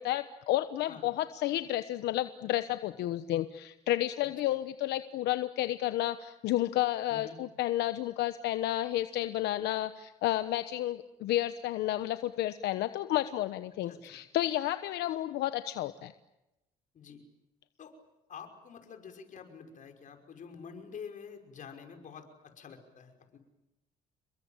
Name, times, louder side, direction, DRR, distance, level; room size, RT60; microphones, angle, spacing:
voice 1, 0.0-16.1, left 14 dB, 80° left, 11 dB, 1.1 m, -31 dB
voice 2, 13.8-14.2 16.9-17.2 17.8-17.9 18.3-23.4, left 6 dB, 50° left, 5 dB, 5.7 m, -48 dB
29.5 x 22.5 x 8.9 m, 0.94 s
cardioid pair, 110°, 17 cm